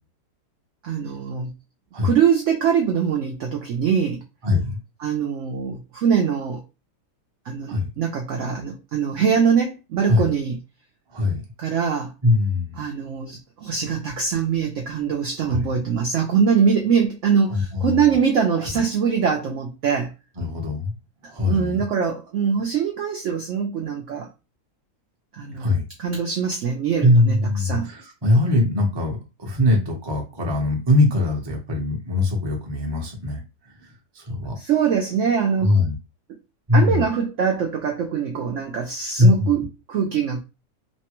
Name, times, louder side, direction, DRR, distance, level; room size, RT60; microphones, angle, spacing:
voice 1, 0.8-1.5 2.0-4.2 5.0-6.6 7.5-10.6 11.6-12.1 12.8-20.1 21.5-24.3 25.3-25.7 26.0-27.9 34.6-35.8 36.7-40.4, right 7 dB, 70° right, 0.7 m, -23 dB
voice 2, 4.4-4.8 7.7-7.9 10.1-10.3 11.1-11.4 12.2-12.8 15.4-15.7 17.5-18.1 18.5-18.7 20.4-20.9 21.3-21.8 25.5-25.8 27.0-33.4 33.8-33.9 34.1-34.5 35.6-35.9 36.7-37.0 39.2-39.3, left 2 dB, 25° right, 0.5 m, -21 dB
3.2 x 2.1 x 2.9 m
omnidirectional pair, 1.8 m